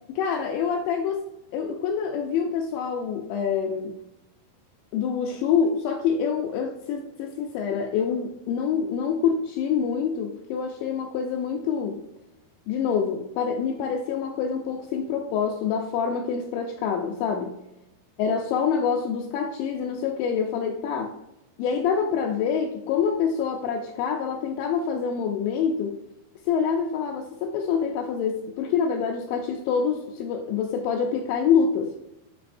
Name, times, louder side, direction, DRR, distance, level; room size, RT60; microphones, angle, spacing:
voice 1, 0.1-1.3 1.5-4.0 4.9-12.0 12.7-17.6 18.2-21.1 21.6-25.9 26.4-31.9, left 6 dB, 80° left, 2 dB, 2.6 m, -26 dB
12.0 x 4.1 x 2.6 m, 0.88 s
omnidirectional pair, 5.7 m